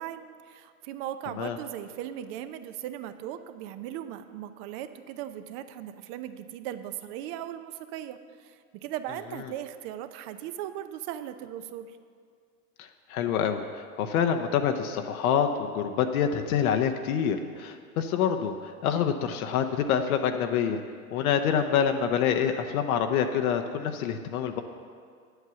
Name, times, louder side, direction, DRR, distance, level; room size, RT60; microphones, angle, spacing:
voice 1, 0.0-12.0, right 11 dB, 45° right, 11 dB, 0.7 m, -38 dB
voice 2, 12.8-20.8 21.1-24.6, left 8 dB, 70° left, 6 dB, 0.9 m, -26 dB
9.2 x 8.1 x 6.9 m, 2.1 s
hypercardioid pair, 115°, 45 cm